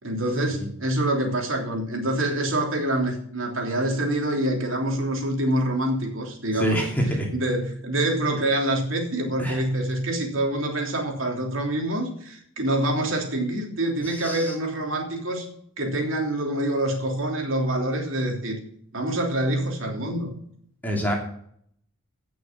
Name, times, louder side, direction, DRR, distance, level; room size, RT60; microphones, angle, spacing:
voice 1, 0.0-15.5 15.8-18.6 18.9-20.3, right 1 dB, 60° right, 1 dB, 3.3 m, -26 dB
voice 2, 6.6-7.3 9.4-9.6 14.1-14.5 20.8-21.2, right 1 dB, 10° left, 0 dB, 2.8 m, -26 dB
17.0 x 6.6 x 6.1 m, 0.65 s
head